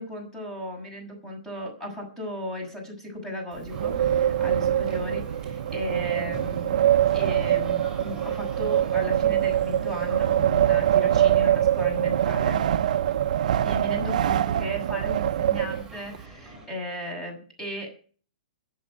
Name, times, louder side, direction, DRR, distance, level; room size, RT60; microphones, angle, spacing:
voice 1, 0.0-6.9 7.1-12.6 13.6-17.9, left 1 dB, 10° left, 3 dB, 6.8 m, -36 dB
Wind, 3.5-16.2, right 11 dB, 60° right, 0.8 m, -24 dB
sound 1, 3.7-16.7, right 3 dB, 10° right, 7.0 m, -45 dB
22.0 x 7.7 x 5.2 m, 0.41 s
hypercardioid pair, 160°, 4 cm